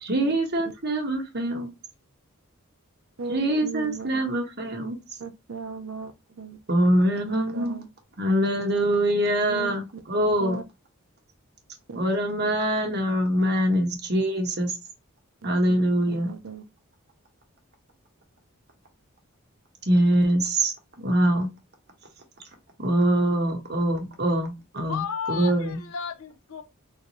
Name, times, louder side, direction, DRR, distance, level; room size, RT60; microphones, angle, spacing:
voice 1, 0.0-1.7 3.3-5.0 6.7-7.8 8.2-10.6 11.9-14.7 15.4-16.3 19.9-21.5 22.8-25.0 25.3-25.8, right 1 dB, 50° right, 1.2 m, -24 dB
voice 2, 3.2-4.2 5.2-6.6 7.3-7.9 9.5-10.6 11.9-12.0 15.4-15.8 16.1-16.6, right 5 dB, 75° right, 0.7 m, -38 dB
voice 3, 24.9-26.6, left 6 dB, 80° left, 0.6 m, -33 dB
3.8 x 2.7 x 3.0 m
head